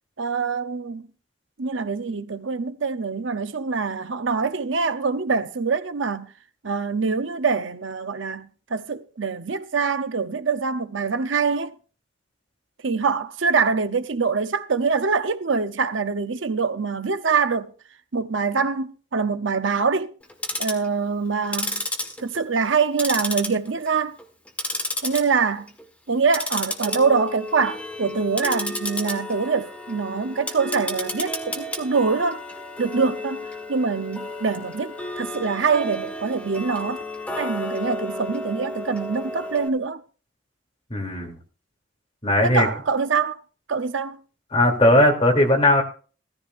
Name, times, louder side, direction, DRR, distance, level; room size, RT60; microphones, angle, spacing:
voice 1, 0.2-1.0 1.6-6.3 6.6-11.7 12.8-17.7 18.1-20.1 20.6-21.8 22.2-24.2 25.0-25.7 26.1-32.4 32.8-37.0 37.4-40.0 42.4-43.4 43.7-44.2, right 5 dB, 85° right, 0.8 m, -24 dB
Tick-tock, 20.2-20.9 21.4-22.7 23.0-23.9 24.2-25.2 25.6-25.8 26.3-39.7, left 1 dB, 5° left, 1.6 m, -32 dB
voice 2, 40.9-41.4 42.2-42.7 44.5-45.8, left 1 dB, 30° left, 3.1 m, -18 dB
17.0 x 14.0 x 2.6 m
head